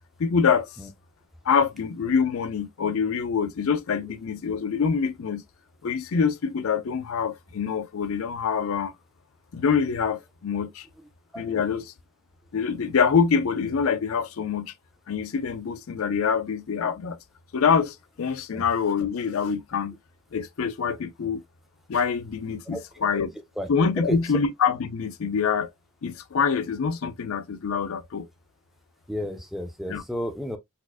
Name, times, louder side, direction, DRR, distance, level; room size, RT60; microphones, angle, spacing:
voice 1, 0.2-0.7 1.5-5.4 5.8-8.9 9.5-10.9 11.4-11.9 12.5-14.7 15.1-17.2 17.5-20.0 20.3-21.4 21.9-23.3 23.7-25.7 26.0-28.3 29.9-30.0, left 6 dB, 70° left, 0.4 m, -25 dB
voice 2, 29.1-30.6, equal, ahead, 0.5 m, -32 dB
4.2 x 2.5 x 2.3 m
head